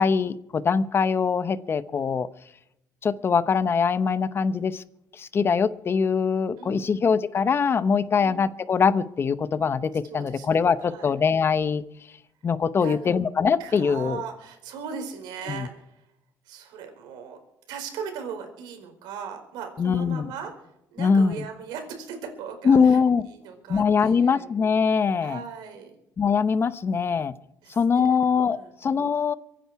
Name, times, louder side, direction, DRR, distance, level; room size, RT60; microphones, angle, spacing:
voice 1, 0.0-2.3 3.0-4.8 5.1-11.8 12.4-14.2 15.5-15.7 19.8-20.3 21.0-21.4 22.6-23.2 23.7-25.4 26.2-27.4 27.7-29.3, left 6 dB, 35° left, 15 dB, 0.8 m, -22 dB
voice 2, 6.6-7.0 8.1-8.4 10.0-10.5 10.8-11.1 12.7-13.2 13.6-16.1 16.4-17.4 17.7-23.0 23.3-24.5 25.2-26.0 27.6-28.2 28.5-28.7, right 6 dB, 85° right, 5 dB, 4.5 m, -39 dB
24.0 x 10.0 x 4.8 m, 0.82 s
cardioid pair, 120°, 7 cm